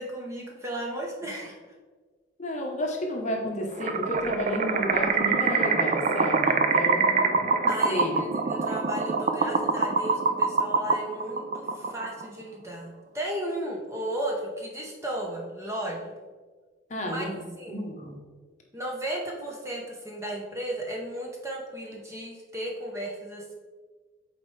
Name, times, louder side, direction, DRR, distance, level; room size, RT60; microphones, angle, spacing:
voice 1, 0.0-1.6 7.7-16.1 17.0-17.3 17.6-17.9 18.7-23.5, right 1 dB, 15° right, -2 dB, 0.8 m, -34 dB
voice 2, 2.4-8.2 16.9-17.4 17.7-18.2, left 1 dB, 35° left, 1 dB, 0.9 m, -32 dB
sound 1, 3.8-12.3, right 4 dB, 40° right, 0.4 m, -25 dB
8.0 x 4.2 x 3.2 m, 1.4 s
head